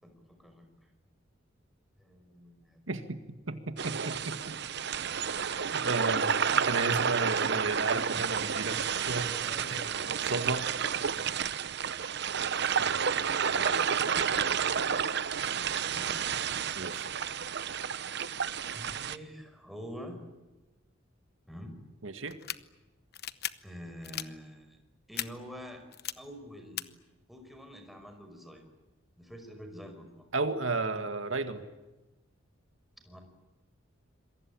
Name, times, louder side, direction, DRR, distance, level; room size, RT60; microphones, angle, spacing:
voice 1, 0.0-0.7 2.0-2.8 5.1-5.3 5.5-5.7 9.3-10.2 12.4-13.8 14.6-15.2 15.9-16.2 18.1-18.2 18.7-20.2 21.5-21.8 23.6-24.8 25.1-25.8 26.2-26.9 27.3-28.6 29.2-30.3 33.0-33.2, equal, ahead, 4 dB, 5.6 m, -47 dB
voice 2, 2.9-3.2 3.5-4.6 5.7-6.3 6.5-9.8 10.3-10.7 16.8-17.1 22.0-22.4 30.3-31.6, right 3 dB, 85° right, 8 dB, 2.1 m, -33 dB
sound 1, 3.8-19.2, right 7 dB, 60° right, 0.9 m, -30 dB
sound 2, 22.3-22.6 23.1-23.5 24.0-24.3 25.1-25.3 25.9-26.1 26.8-26.9, left 12 dB, 55° left, 1.0 m, -35 dB
27.5 x 23.0 x 8.8 m, 1.1 s
head